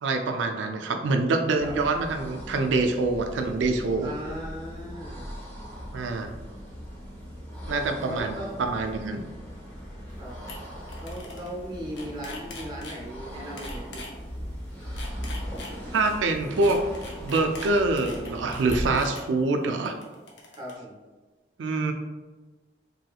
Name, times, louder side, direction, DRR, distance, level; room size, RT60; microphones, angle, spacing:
voice 1, 0.0-4.1 5.9-6.3 7.7-9.2 15.9-16.8 17.2-20.0 21.6-21.9, right 3 dB, 90° right, 5 dB, 0.4 m, -25 dB
sound 1, 1.4-19.2, equal, 10° left, 0.8 m, -39 dB
voice 2, 4.0-5.3 8.1-8.6 10.1-10.4 11.0-14.1 20.6-20.9, equal, 25° right, -3 dB, 0.6 m, -37 dB
sound 2, 10.1-10.2 10.5-10.6 10.9-11.5 11.8-13.0 13.6-14.1 14.8-16.0 16.6-19.2 19.9-20.7, left 3 dB, 80° left, 0.6 m, -41 dB
3.1 x 2.8 x 2.3 m, 1.3 s
head